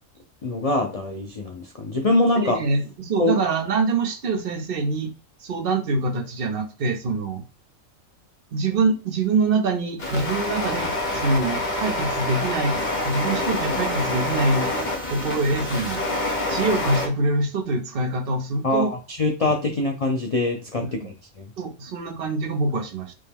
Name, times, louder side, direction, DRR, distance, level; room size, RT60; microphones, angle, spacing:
voice 1, 0.4-2.6 3.2-3.4 18.6-21.5, left 2 dB, 75° left, 3 dB, 0.3 m, -24 dB
voice 2, 2.4-5.1 5.4-7.4 8.5-12.7 13.0-14.7 15.1-16.0 16.5-18.9 20.8-21.1 21.6-23.1, right 3 dB, 50° right, 6 dB, 0.7 m, -25 dB
sound 1, 10.0-17.1, left 1 dB, 40° left, 0.9 m, -26 dB
5.2 x 2.1 x 3.4 m, 0.34 s
omnidirectional pair, 1.4 m